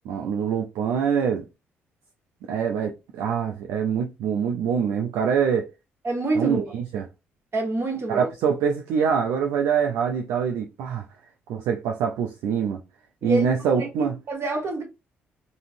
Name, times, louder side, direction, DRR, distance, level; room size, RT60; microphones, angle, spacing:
voice 1, 0.1-1.4 2.5-5.7 6.4-7.1 8.1-11.0 11.5-12.8 13.2-14.2, right 7 dB, 65° right, 0.4 m, -24 dB
voice 2, 6.0-6.7 7.5-8.3 13.2-13.5 13.7-14.8, right 2 dB, 45° right, 1.1 m, -27 dB
3.6 x 2.0 x 2.5 m
figure-of-eight pair, 45°, 6 cm